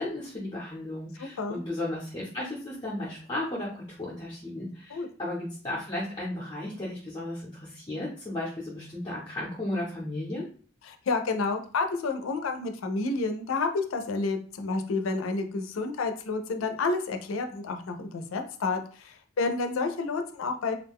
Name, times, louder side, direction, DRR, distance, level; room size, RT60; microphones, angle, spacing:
voice 1, 0.0-10.4, left 1 dB, 20° left, -7 dB, 0.5 m, -34 dB
voice 2, 1.2-1.6 4.9-5.1 10.8-20.7, left 3 dB, 90° left, 6 dB, 0.4 m, -30 dB
2.3 x 2.1 x 3.5 m, 0.43 s
head